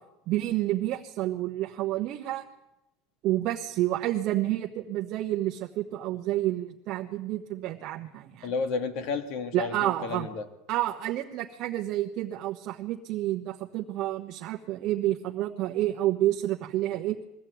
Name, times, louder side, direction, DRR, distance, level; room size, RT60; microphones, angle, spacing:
voice 1, 0.3-2.4 3.2-8.5 9.5-10.3 10.7-17.2, right 14 dB, 40° right, 0 dB, 1.2 m, -29 dB
voice 2, 8.4-10.5, left 4 dB, 50° left, 8 dB, 2.1 m, -31 dB
22.5 x 15.0 x 9.3 m, 0.92 s
cardioid pair, 170°, 0 cm